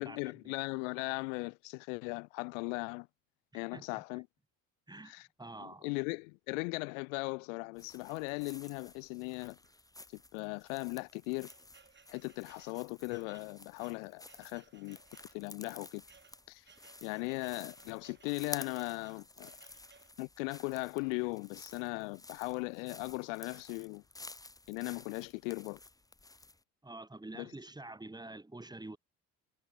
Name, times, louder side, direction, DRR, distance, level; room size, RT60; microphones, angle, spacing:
voice 1, 0.0-3.1 3.5-4.3 5.1-5.3 5.6-9.6 10.1-11.5 12.1-15.0 15.3-16.0 16.5-16.6 17.0-19.5 20.2-24.0 24.7-25.8 27.3-27.5, left 32 dB, 85° left, 0.7 m, -38 dB
voice 2, 3.7-4.0 4.9-5.9 26.8-29.0, right 2 dB, 10° right, 3.2 m, -47 dB
sound 1, 7.7-26.6, left 2 dB, 10° left, 1.2 m, -52 dB
sound 2, 8.1-8.9 9.6-9.8 10.1-10.2 10.8-20.2, right 5 dB, 30° right, 3.3 m, -63 dB
supercardioid pair, 70°, 37 cm